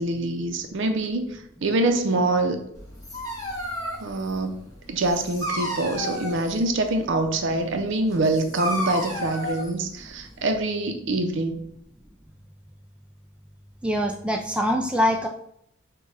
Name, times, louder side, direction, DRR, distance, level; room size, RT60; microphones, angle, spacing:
voice 1, 0.0-2.6 4.0-4.6 4.9-11.6, right 2 dB, 60° right, 5 dB, 0.5 m, -25 dB
Dog, 2.7-10.6, equal, 15° left, 1.0 m, -33 dB
voice 2, 13.8-15.3, equal, 5° right, 3 dB, 0.3 m, -23 dB
6.2 x 2.2 x 3.2 m, 0.72 s
head